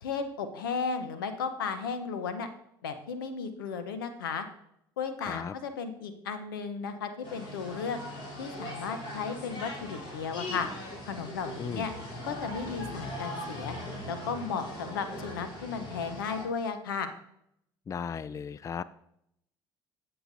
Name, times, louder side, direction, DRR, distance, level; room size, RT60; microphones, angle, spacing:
voice 1, 0.0-2.5 2.8-4.5 5.0-8.0 8.4-10.7 11.0-11.9 12.2-13.8 14.1-17.1, left 5 dB, 85° left, 10 dB, 0.8 m, -34 dB
voice 2, 5.2-5.5 11.6-11.9 17.9-18.8, left 6 dB, 30° left, 17 dB, 0.3 m, -36 dB
sound 1, 7.2-16.4, left 1 dB, 50° left, 3.6 m, -40 dB
15.5 x 5.9 x 2.6 m, 0.76 s
hypercardioid pair, 60°, 11 cm